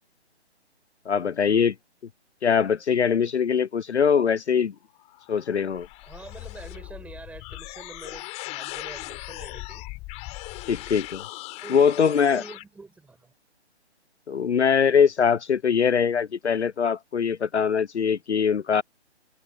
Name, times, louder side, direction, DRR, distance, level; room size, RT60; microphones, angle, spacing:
voice 1, 1.1-1.7 2.4-4.7 5.3-5.9 10.7-11.2 11.7-12.4 14.3-18.8, left 7 dB, 70° left, 0.6 m, -22 dB
sound 1, 5.0-12.6, left 22 dB, 20° left, 7.9 m, -39 dB
voice 2, 6.0-9.9 11.5-13.3, right 3 dB, 5° right, 6.2 m, -45 dB
figure-of-eight pair, 140°, 35 cm